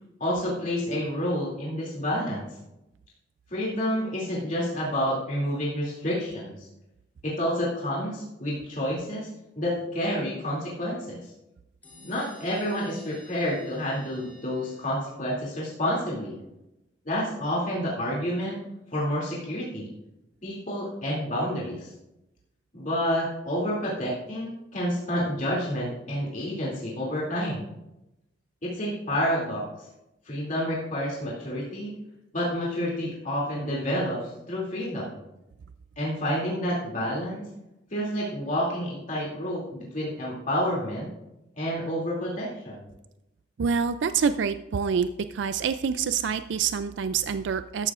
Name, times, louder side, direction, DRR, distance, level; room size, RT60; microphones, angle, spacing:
voice 1, 0.2-2.5 3.5-6.5 7.2-9.3 9.6-11.2 12.0-16.3 17.0-18.6 18.9-19.9 20.4-21.9 22.7-27.6 28.6-29.6 30.3-31.9 32.3-35.2 36.0-37.4 37.9-41.1 41.6-42.9, equal, 45° left, -5 dB, 2.7 m, -29 dB
sound 1, 11.8-15.4, left 1 dB, 10° left, 2.8 m, -50 dB
voice 2, 43.6-47.9, right 6 dB, 80° right, 11 dB, 0.4 m, -26 dB
14.0 x 11.5 x 2.5 m, 0.91 s
head